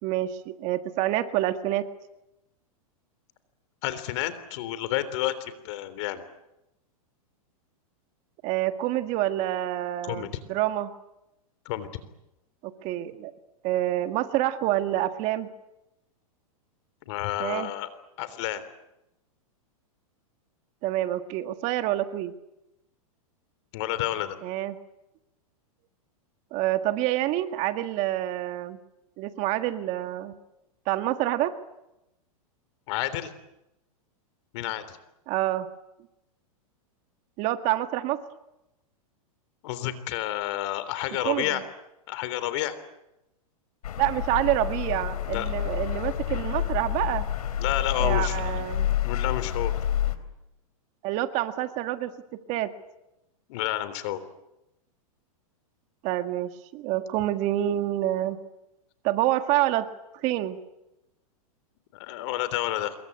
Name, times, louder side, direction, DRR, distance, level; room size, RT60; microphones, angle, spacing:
voice 1, 0.0-1.8 8.4-10.9 12.6-13.3 13.6-15.5 17.4-17.7 20.8-22.3 24.4-24.8 26.5-28.8 29.2-30.3 30.8-31.5 35.3-35.7 37.4-38.2 41.2-41.6 44.0-47.2 48.0-48.9 51.0-52.1 52.5-52.7 56.0-58.4 59.0-59.9 60.2-60.6, right 14 dB, 40° right, 9 dB, 1.8 m, -27 dB
voice 2, 3.8-6.2 10.0-10.3 11.7-11.9 17.1-17.9 18.2-18.6 23.7-24.4 32.9-33.3 34.5-35.0 39.6-41.6 42.1-42.8 45.3-45.5 47.6-48.5 49.0-49.8 53.5-54.2 61.9-63.0, left 13 dB, 50° left, 13 dB, 3.5 m, -30 dB
sound 1, 43.8-50.2, left 11 dB, 80° left, 3.4 m, -28 dB
27.0 x 23.0 x 9.6 m, 0.91 s
hypercardioid pair, 145°, 19 cm